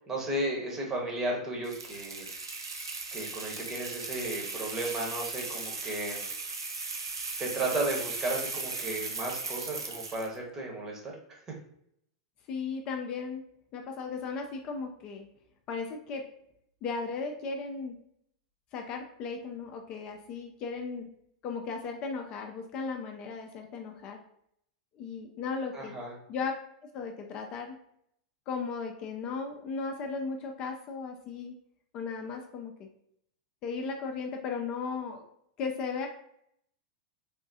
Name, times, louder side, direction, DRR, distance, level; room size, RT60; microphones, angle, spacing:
voice 1, 0.1-2.2 3.1-6.2 7.4-11.1 11.5-11.6 25.7-26.1, right 2 dB, 20° right, -1 dB, 1.0 m, -34 dB
sound 1, 1.6-10.4, right 3 dB, 75° right, 0.4 m, -37 dB
voice 2, 12.5-13.4 13.7-15.3 15.7-16.2 16.8-18.0 18.7-21.1 21.4-24.2 24.9-26.0 26.3-26.5 26.9-27.8 28.5-31.6 31.9-32.9 33.6-35.2 35.6-36.1, left 5 dB, 40° left, 3 dB, 0.4 m, -36 dB
3.4 x 2.2 x 2.7 m, 0.71 s
figure-of-eight pair, 90°, 2 cm